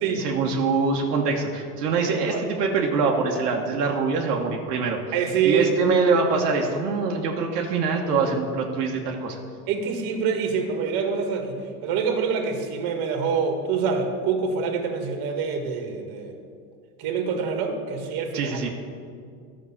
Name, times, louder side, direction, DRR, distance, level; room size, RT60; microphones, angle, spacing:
voice 1, 0.2-5.0 5.4-9.4 18.3-18.7, right 4 dB, 90° right, 0 dB, 1.5 m, -24 dB
voice 2, 5.1-5.7 9.7-16.3 17.0-18.7, right 5 dB, 50° right, 4 dB, 1.8 m, -26 dB
11.5 x 6.1 x 7.2 m, 2.2 s
supercardioid pair, 115°, 46 cm